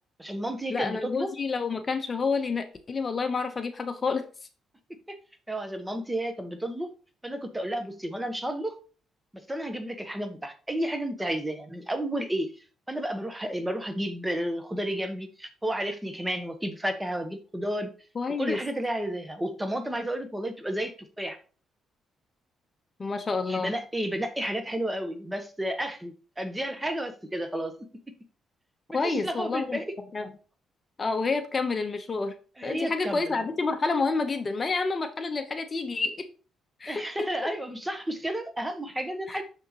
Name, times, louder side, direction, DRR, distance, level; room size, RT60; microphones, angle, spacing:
voice 1, 0.2-1.3 5.1-5.2 5.5-6.9 7.2-8.8 9.3-17.9 18.4-21.4 23.5-27.8 28.9-29.9 32.6-33.4 36.9-39.4, right 1 dB, 10° right, 8 dB, 1.2 m, -32 dB
voice 2, 0.7-4.2 18.1-18.6 23.0-23.7 28.9-29.8 30.1-30.3 31.0-32.3 32.6-36.3 36.8-37.3 39.3-39.4, left 4 dB, 35° left, 8 dB, 0.9 m, -29 dB
6.6 x 6.3 x 3.0 m, 0.37 s
cardioid pair, 90°, 0 cm